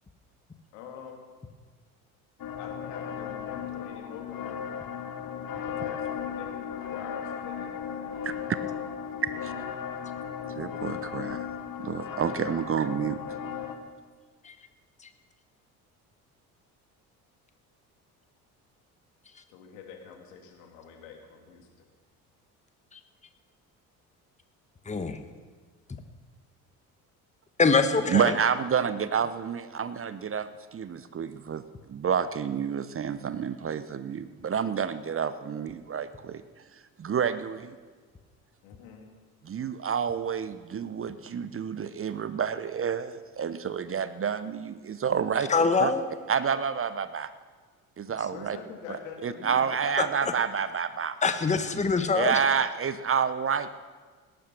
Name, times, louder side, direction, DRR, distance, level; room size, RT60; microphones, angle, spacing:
voice 1, 0.7-1.3 2.6-4.7 5.6-8.1 19.5-21.7 38.6-39.1 48.2-50.1, left 6 dB, 70° left, 2 dB, 2.8 m, -45 dB
sound 1, 2.4-13.8, left 8 dB, 50° left, 1.7 m, -36 dB
voice 2, 9.2-9.5 10.5-11.5 11.8-13.2 28.1-31.6 31.9-36.4 37.0-37.7 39.4-45.5 45.8-45.9 46.3-47.3 48.0-48.6 48.9-51.2 52.1-53.7, right 7 dB, 30° right, 13 dB, 0.8 m, -29 dB
voice 3, 24.9-25.2 27.6-28.3 45.5-46.0 50.2-50.3 51.2-52.4, left 4 dB, 15° left, 8 dB, 1.3 m, -24 dB
18.0 x 10.5 x 6.0 m, 1.5 s
figure-of-eight pair, 55°, 45 cm